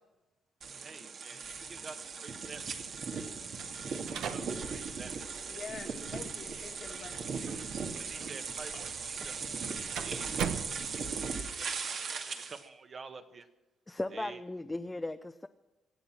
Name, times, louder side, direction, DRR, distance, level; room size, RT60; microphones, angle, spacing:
sound 1, 0.6-12.6, right 5 dB, 60° right, 2.2 m, -38 dB
voice 1, 0.8-3.1 4.1-5.5 5.8-5.9 6.9-7.1 7.9-10.3 11.0-11.3 11.6-13.5 14.1-14.4, right 4 dB, 45° right, 7 dB, 1.6 m, -49 dB
sound 2, 3.5-11.3, right 8 dB, 75° right, 1.2 m, -43 dB
voice 2, 5.5-7.2 7.8-7.9 8.7-8.8, left 5 dB, 50° left, 4 dB, 1.9 m, -46 dB
voice 3, 13.9-15.5, left 2 dB, 15° left, 7 dB, 0.7 m, -37 dB
25.0 x 8.3 x 6.1 m, 1.1 s
cardioid pair, 90°, 0 cm